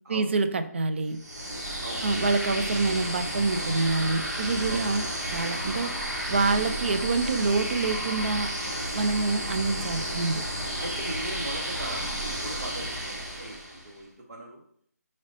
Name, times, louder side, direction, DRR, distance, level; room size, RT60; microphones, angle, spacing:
voice 1, 0.1-1.2 2.0-5.9 6.3-8.5 8.9-10.4, right 3 dB, 40° right, 9 dB, 0.4 m, -26 dB
sound 1, 1.1-13.9, right 1 dB, 80° right, 1.3 m, -32 dB
voice 2, 10.8-14.6, right 1 dB, 65° right, -2 dB, 0.7 m, -39 dB
4.9 x 3.2 x 2.7 m, 0.65 s
figure-of-eight pair, 160°, 9 cm